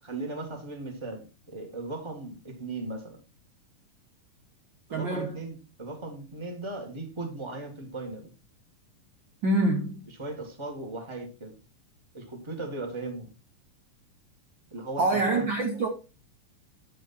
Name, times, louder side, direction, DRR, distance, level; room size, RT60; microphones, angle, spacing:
voice 1, 0.0-3.2 4.9-8.3 10.2-11.6 12.1-13.3 14.7-15.5, right 2 dB, 15° right, 1.1 m, -37 dB
voice 2, 4.9-5.4 9.4-10.0 15.0-15.9, right 2 dB, 75° right, 1.1 m, -25 dB
8.7 x 6.2 x 4.3 m
omnidirectional pair, 3.7 m